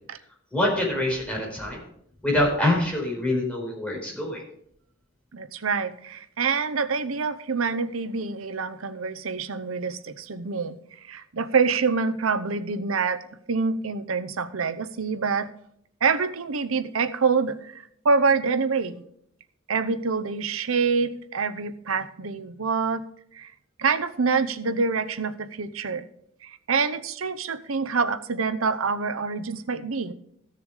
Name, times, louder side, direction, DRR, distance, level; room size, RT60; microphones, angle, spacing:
voice 1, 0.5-1.8 2.2-4.4, left 1 dB, 5° left, -2 dB, 4.7 m, -25 dB
voice 2, 5.3-10.8 11.1-13.2 13.5-15.5 16.0-19.0 19.7-23.0 23.3-23.5 23.8-26.1 26.4-30.1, right 5 dB, 85° right, 10 dB, 0.8 m, -26 dB
14.5 x 6.8 x 4.9 m, 0.68 s
head